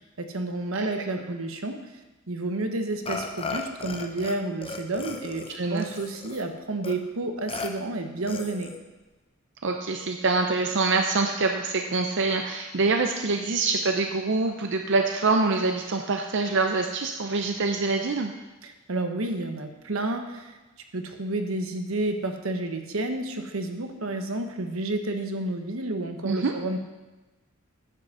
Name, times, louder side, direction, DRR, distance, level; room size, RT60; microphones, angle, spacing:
voice 1, 0.2-1.8 2.3-8.7 18.6-20.6 20.9-26.8, right 2 dB, 85° right, 6 dB, 1.1 m, -30 dB
Burping eructation, 3.1-4.4 4.6-6.4 6.8-6.9 7.5-7.7 8.3-8.8, left 4 dB, 25° left, 0.8 m, -35 dB
voice 2, 9.6-18.3 26.2-26.5, right 3 dB, 60° right, 4 dB, 0.6 m, -25 dB
9.6 x 6.0 x 6.6 m, 1.1 s
head